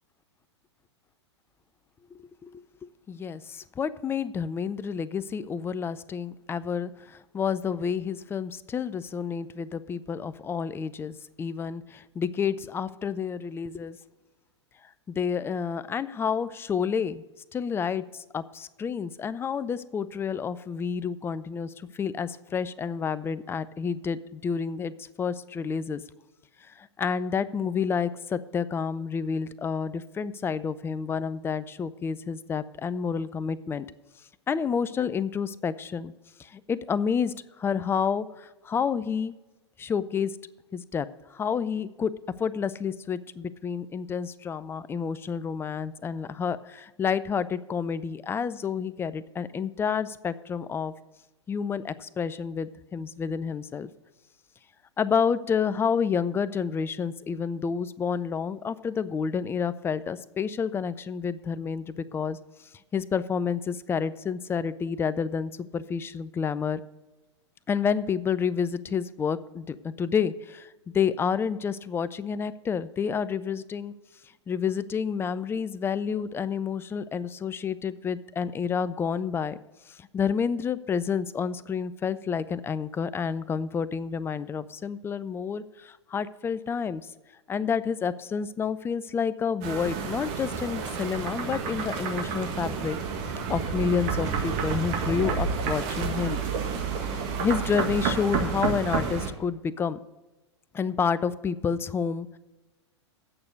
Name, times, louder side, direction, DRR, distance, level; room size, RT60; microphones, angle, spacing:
voice 1, 2.1-2.6 3.1-14.0 15.1-17.2 17.5-26.0 26.8-33.9 34.5-36.1 36.4-39.3 39.8-40.3 40.7-42.1 42.4-50.9 51.5-53.9 55.0-62.4 62.9-66.8 67.7-70.7 70.9-73.9 74.5-79.6 79.9-87.0 87.5-93.0 93.5-96.4 97.1-100.0 100.7-102.4, left 6 dB, 15° left, 16 dB, 0.4 m, -29 dB
sound 1, 89.6-99.3, right 5 dB, 45° right, 1.8 m, -30 dB
8.8 x 6.6 x 8.1 m, 1.1 s
hypercardioid pair, 105°, 15 cm